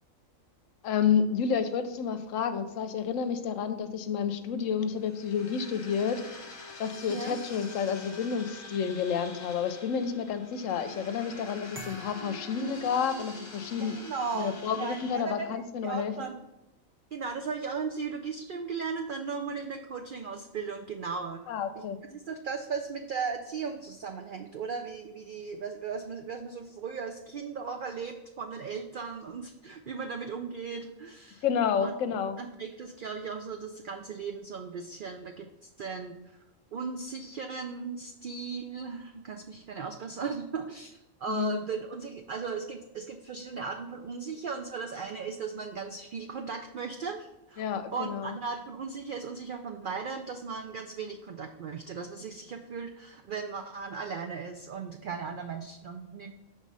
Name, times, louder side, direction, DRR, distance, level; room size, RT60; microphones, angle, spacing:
voice 1, 0.8-6.4 6.8-14.0 14.3-16.3 21.5-22.0 31.4-32.4 41.3-41.6 47.6-48.4, left 7 dB, 75° left, 9 dB, 0.9 m, -30 dB
sound 1, 4.9-15.1, left 3 dB, 35° left, 1.0 m, -46 dB
sound 2, 11.7-13.7, right 1 dB, 10° right, 0.6 m, -48 dB
voice 2, 13.8-16.4 17.1-21.4 22.1-31.4 31.8-31.9 32.4-36.2 36.7-56.3, right 5 dB, 80° right, 4 dB, 0.4 m, -37 dB
6.2 x 3.7 x 5.3 m, 0.91 s
omnidirectional pair, 1.4 m